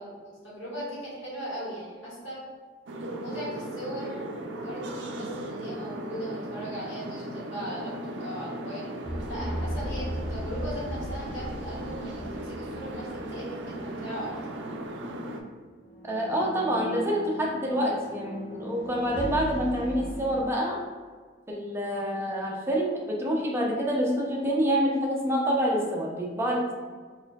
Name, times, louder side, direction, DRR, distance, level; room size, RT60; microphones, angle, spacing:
voice 1, 0.0-2.4 3.1-4.2 4.5-8.9 9.3-14.5, equal, 85° left, -7 dB, 1.4 m, -38 dB
sound 1, 2.9-15.4, right 1 dB, 70° right, 0.4 m, -37 dB
sound 2, 9.0-13.9 14.2-14.4 15.8-20.4, equal, 55° left, 0.9 m, -37 dB
voice 2, 16.0-20.8 21.5-26.7, equal, 15° right, -2 dB, 0.5 m, -27 dB
4.2 x 2.6 x 2.3 m, 1.5 s
head